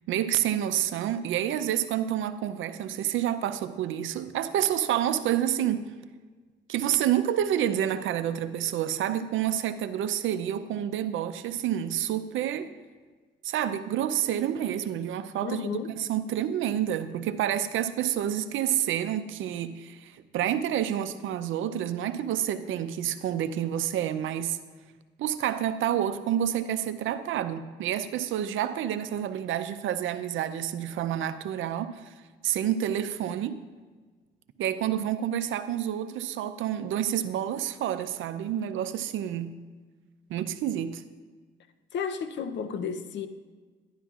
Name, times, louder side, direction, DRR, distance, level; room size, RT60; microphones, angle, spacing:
voice 1, 0.1-5.9 6.7-12.7 13.4-24.6 25.2-32.1 32.4-33.6 34.6-39.6 40.3-41.0, right 10 dB, 80° right, 11 dB, 0.6 m, -29 dB
voice 2, 15.4-15.9 41.9-43.3, left 6 dB, 65° left, 9 dB, 0.7 m, -32 dB
11.0 x 11.0 x 2.4 m, 1.4 s
cardioid pair, 90°, 20 cm